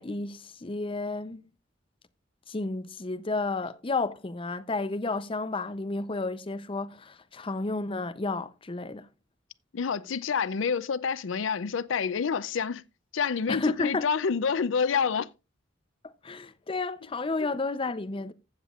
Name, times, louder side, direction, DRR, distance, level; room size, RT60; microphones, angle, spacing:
voice 1, 0.0-1.5 2.5-9.1 13.5-14.1 16.0-18.3, left 3 dB, 30° left, 0.6 m, -32 dB
voice 2, 9.7-12.8 13.1-15.3, left 6 dB, 85° left, 0.5 m, -28 dB
15.5 x 7.4 x 2.4 m
head